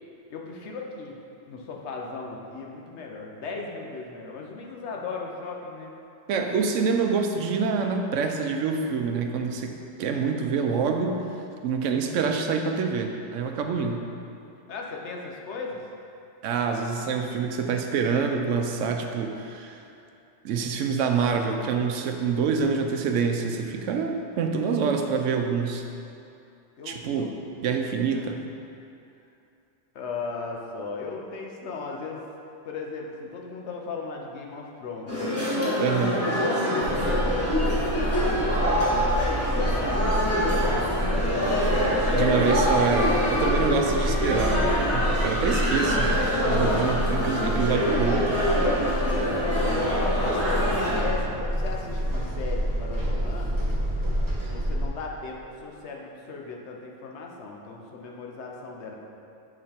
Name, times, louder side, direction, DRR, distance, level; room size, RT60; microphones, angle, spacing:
voice 1, 0.3-1.2 1.5-5.9 14.7-15.8 26.8-27.3 28.1-28.3 29.9-32.2 32.6-35.4 36.0-38.7 38.9-42.1 43.6-44.2 49.9-53.6 54.5-59.0, left 4 dB, 65° left, 0 dB, 1.0 m, -37 dB
voice 2, 6.3-11.2 11.6-14.0 16.4-19.8 20.4-25.8 26.9-27.3 27.6-28.4 35.8-36.2 42.1-46.1 46.4-48.4, right 5 dB, 80° right, 4 dB, 0.9 m, -26 dB
sound 1, 35.1-51.0, equal, 10° left, 1.3 m, -25 dB
sound 2, 36.8-54.9, equal, 15° right, 1.1 m, -28 dB
7.4 x 4.0 x 4.3 m, 2.7 s
omnidirectional pair, 1.3 m